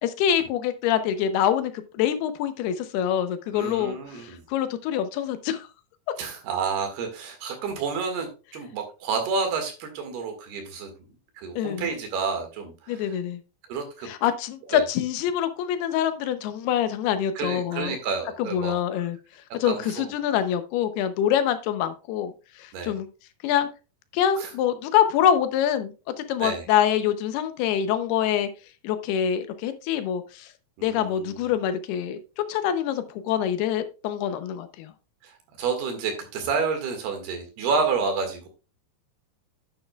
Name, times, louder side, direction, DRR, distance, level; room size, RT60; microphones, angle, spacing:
voice 1, 0.0-5.7 11.6-11.9 12.9-13.4 14.1-18.0 18.4-19.2 19.5-22.3 22.6-23.1 23.4-23.7 24.1-28.5 28.8-30.5 30.8-32.2 32.5-34.9, left 9 dB, 85° left, 10 dB, 2.8 m, -25 dB
voice 2, 3.5-4.4 6.2-10.9 11.4-13.1 13.7-14.1 14.7-14.8 17.4-18.8 19.7-20.1 22.7-22.9 24.4-24.5 26.4-26.7 30.8-31.5 35.2-38.5, right 5 dB, 80° right, 5 dB, 3.8 m, -30 dB
9.7 x 9.5 x 2.3 m, 0.31 s
omnidirectional pair, 4.5 m